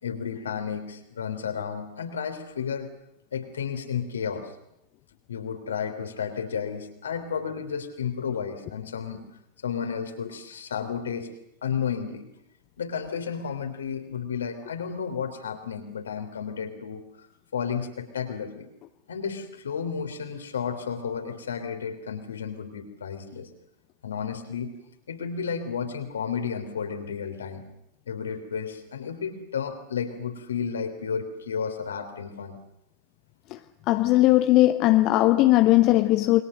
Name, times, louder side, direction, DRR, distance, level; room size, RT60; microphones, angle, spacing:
voice 1, 0.0-2.9 3.3-4.5 5.3-9.3 9.6-11.3 11.6-12.3 12.8-17.0 17.5-18.7 19.1-23.5 24.0-24.7 25.1-27.6 28.1-32.6, left 7 dB, 70° left, 3.3 m, -32 dB
voice 2, 33.9-36.4, left 16 dB, 40° left, 0.9 m, -19 dB
28.5 x 22.5 x 6.6 m
figure-of-eight pair, 90°, 0 cm